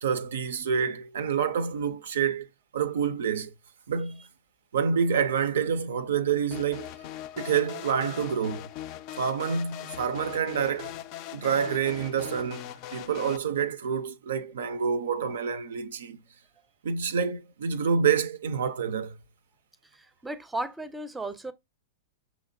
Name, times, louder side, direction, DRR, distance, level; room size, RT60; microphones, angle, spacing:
voice 1, 0.0-2.5 2.7-3.5 3.9-4.2 4.7-6.9 7.4-8.7 9.2-10.9 11.3-16.2 16.8-19.2, right 7 dB, 70° right, 0.4 m, -27 dB
sound 1, 6.5-13.4, left 12 dB, 45° left, 0.3 m, -40 dB
voice 2, 19.9-21.5, right 2 dB, 10° right, 0.5 m, -35 dB
6.0 x 2.9 x 2.5 m
figure-of-eight pair, 100°, 0 cm